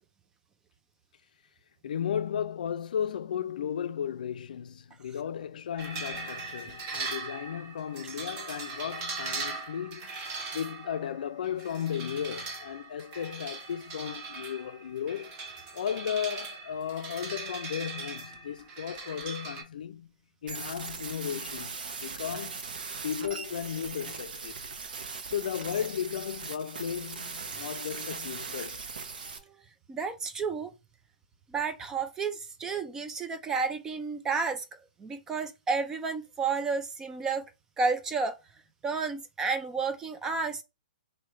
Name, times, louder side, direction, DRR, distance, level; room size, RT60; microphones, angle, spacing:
voice 1, 1.8-10.2 10.5-15.4 15.7-20.1 20.4-22.6 23.0-24.6 25.3-28.8, left 8 dB, 60° left, 0.4 m, -35 dB
sound 1, 5.8-19.6, right 4 dB, 25° right, 0.9 m, -40 dB
sound 2, 20.5-29.4, right 4 dB, 70° right, 0.9 m, -39 dB
voice 2, 29.9-30.7 31.5-37.5 37.8-38.4 38.8-40.6, right 4 dB, 10° right, 0.3 m, -31 dB
3.1 x 2.7 x 4.2 m
hypercardioid pair, 155°, 5 cm